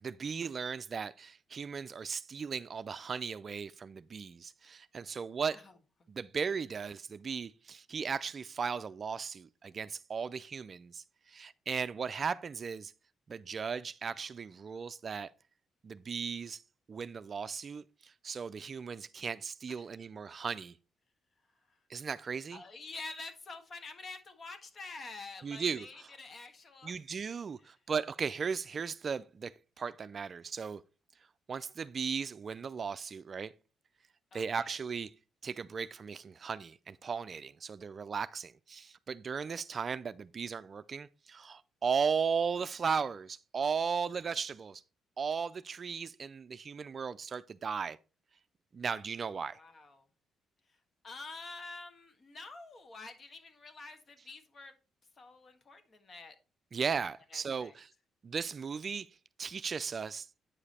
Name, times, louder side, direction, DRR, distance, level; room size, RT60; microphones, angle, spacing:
voice 1, 0.0-5.6 6.1-12.9 13.3-15.3 15.8-16.6 16.9-20.8 21.9-22.6 25.4-26.1 26.8-30.8 31.5-33.5 34.3-35.1 35.4-44.8 45.2-48.0 48.7-49.6 56.7-57.9 58.2-59.1 59.4-60.3, right 6 dB, 45° right, 0.4 m, -36 dB
voice 2, 22.5-26.9 34.3-34.7 49.5-50.1 51.0-54.7 55.2-56.3 57.3-57.7, left 3 dB, 40° left, 1.5 m, -47 dB
9.0 x 5.0 x 4.2 m
cardioid pair, 90°, 0 cm